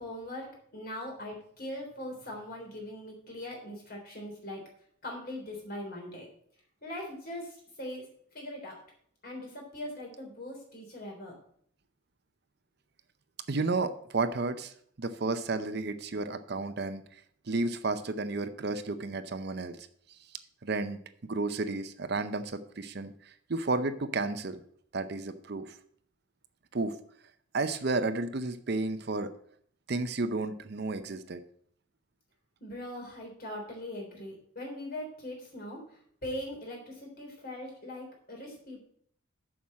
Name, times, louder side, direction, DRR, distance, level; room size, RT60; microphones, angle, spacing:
voice 1, 0.0-4.6 5.0-6.3 6.8-8.1 8.3-8.8 9.2-11.4 32.6-38.8, left 1 dB, 45° left, 0 dB, 3.4 m, -41 dB
voice 2, 13.5-17.2 17.5-19.8 20.6-24.6 24.9-25.7 26.7-26.9 27.5-29.3 29.9-31.4, right 3 dB, 50° right, 10 dB, 0.6 m, -32 dB
7.2 x 6.1 x 7.4 m, 0.62 s
head